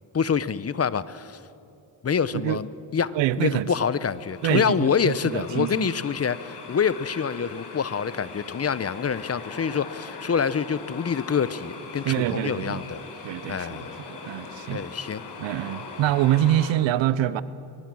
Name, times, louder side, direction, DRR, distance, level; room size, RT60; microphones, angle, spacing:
voice 1, 0.1-1.4 2.0-13.0 13.5-14.0 14.7-15.2, left 6 dB, 35° left, 0.8 m, -26 dB
voice 2, 3.1-3.7 4.4-5.9 12.0-12.8 13.2-14.8 15.4-17.4, right 13 dB, 90° right, 0.8 m, -25 dB
sound 1, 3.9-16.7, left 4 dB, 65° left, 4.0 m, -41 dB
24.5 x 22.5 x 6.3 m
cardioid pair, 75°, 43 cm